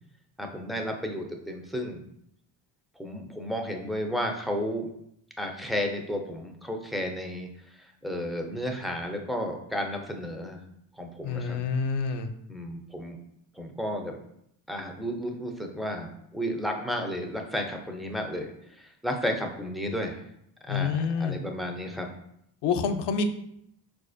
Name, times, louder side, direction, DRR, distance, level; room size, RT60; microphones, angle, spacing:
voice 1, 0.4-2.0 3.0-4.9 5.4-7.5 8.0-10.6 11.0-11.6 12.5-13.2 13.5-14.2 14.7-20.2 20.7-22.1, equal, ahead, 2 dB, 0.4 m, -32 dB
voice 2, 11.2-12.3 20.7-21.4 22.6-23.2, left 5 dB, 60° left, 7 dB, 0.5 m, -27 dB
4.1 x 2.4 x 2.5 m, 0.74 s
supercardioid pair, 70°, 47 cm